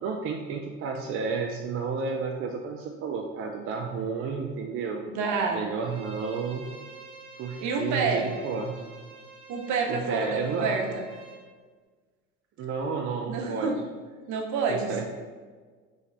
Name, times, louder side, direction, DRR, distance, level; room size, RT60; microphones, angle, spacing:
voice 1, 0.0-5.0 5.5-6.6 7.4-8.9 9.9-10.8 12.6-13.7 14.7-15.1, right 5 dB, 40° right, 1 dB, 0.4 m, -31 dB
voice 2, 5.0-5.6 7.6-8.3 9.5-11.0 13.2-13.7 14.3-15.1, right 4 dB, 55° right, 1 dB, 0.8 m, -28 dB
Bowed string instrument, 5.8-11.4, right 3 dB, 15° right, 0.9 m, -48 dB
3.2 x 2.9 x 3.9 m, 1.5 s
supercardioid pair, 85°, 36 cm